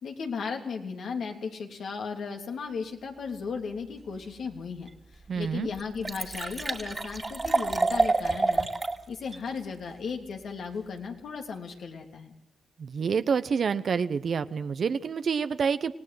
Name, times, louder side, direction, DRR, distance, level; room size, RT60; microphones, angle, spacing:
voice 1, 0.0-4.9 5.3-8.7 9.1-12.3, left 5 dB, 75° left, 3 dB, 3.2 m, -35 dB
Liquid, 4.9-5.0 5.4-5.5 5.7-9.0 9.3-9.4, right 3 dB, 30° right, 2.3 m, -27 dB
voice 2, 5.3-5.7 12.8-15.9, right 6 dB, 60° right, 11 dB, 0.9 m, -27 dB
26.5 x 17.5 x 7.8 m, 0.74 s
cardioid pair, 70°, 0 cm